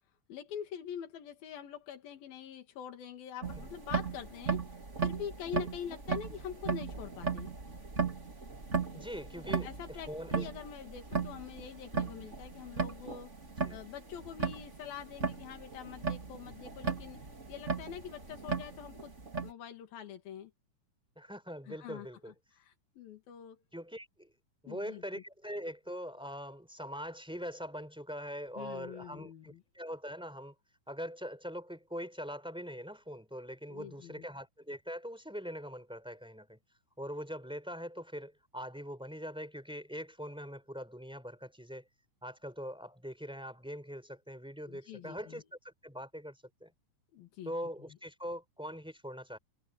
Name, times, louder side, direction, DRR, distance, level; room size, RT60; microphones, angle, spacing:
voice 1, 0.3-4.7 5.0-7.5 9.6-13.3 13.7-17.2 17.5-19.1 19.4-20.5 21.7-23.6 24.7-25.2 28.6-29.6 33.7-34.3 44.7-45.4 47.1-47.6, left 9 dB, 85° left, 4.0 m, -45 dB
sound 1, 3.4-19.5, right 5 dB, 20° right, 2.5 m, -37 dB
voice 2, 8.9-9.7 10.1-10.5 13.6-13.8 21.2-22.3 23.7-24.3 24.6-30.5 30.9-36.6 37.0-41.9 42.2-46.7 47.5-49.4, equal, ahead, 3.6 m, -42 dB
omnidirectional pair, 4.1 m